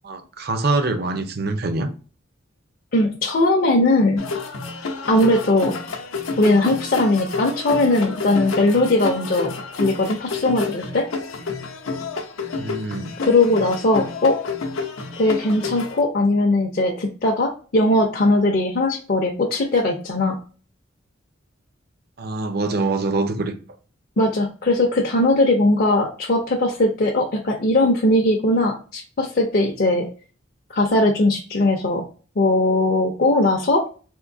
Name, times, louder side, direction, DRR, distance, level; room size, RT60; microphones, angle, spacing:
voice 1, 0.0-1.9 12.6-13.2 22.2-23.5, right 3 dB, 50° right, 0.5 m, -24 dB
voice 2, 2.9-4.2 5.1-5.8 6.4-11.1 13.2-14.4 15.2-20.3 24.2-30.1 30.7-32.0 32.4-33.8, left 2 dB, 45° left, 0.5 m, -19 dB
traditional moroccan music, 4.2-16.0, left 4 dB, 85° left, 0.6 m, -30 dB
3.6 x 2.6 x 2.6 m
head